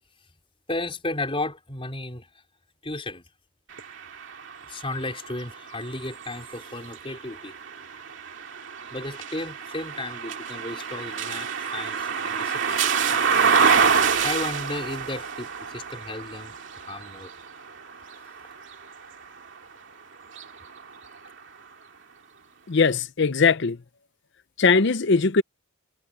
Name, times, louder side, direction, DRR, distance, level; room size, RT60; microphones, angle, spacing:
voice 1, 0.7-2.3 2.8-3.2 4.6-7.5 8.9-12.8 14.2-16.6 16.9-17.3, left 2 dB, 25° left, 4.7 m, -34 dB
sound 1, 3.7-19.6 20.2-21.4, right 6 dB, 60° right, 2.4 m, -28 dB
voice 2, 22.7-23.8 24.6-25.4, left 4 dB, 55° left, 0.7 m, -20 dB
head